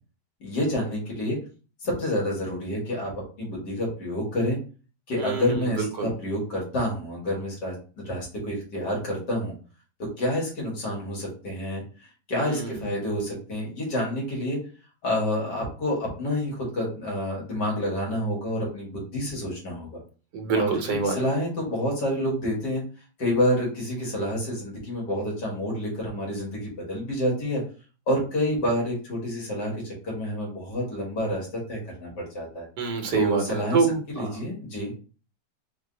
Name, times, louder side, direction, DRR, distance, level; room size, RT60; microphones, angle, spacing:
voice 1, 0.4-1.4 1.8-4.6 5.1-9.5 10.2-11.8 12.3-14.7 15.0-19.9 20.5-20.7 21.0-22.8 23.2-27.6 28.1-32.7 33.1-34.9, equal, 70° left, -3 dB, 2.3 m, -28 dB
voice 2, 5.2-6.1 12.4-12.8 20.3-21.1 32.8-33.4 33.7-34.3, right 4 dB, 75° right, 4 dB, 1.5 m, -26 dB
4.5 x 2.3 x 3.8 m, 0.36 s
omnidirectional pair, 1.9 m